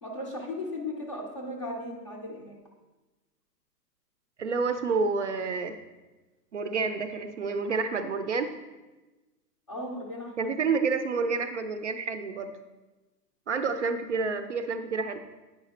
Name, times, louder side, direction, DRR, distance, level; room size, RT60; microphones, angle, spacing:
voice 1, 0.0-2.6 9.7-10.5, left 1 dB, 20° left, -1 dB, 0.5 m, -36 dB
voice 2, 4.4-5.8 6.5-8.5 10.4-12.5 13.5-15.2, right 4 dB, 45° right, 9 dB, 0.5 m, -29 dB
9.5 x 5.0 x 4.1 m, 1.1 s
hypercardioid pair, 165°, 49 cm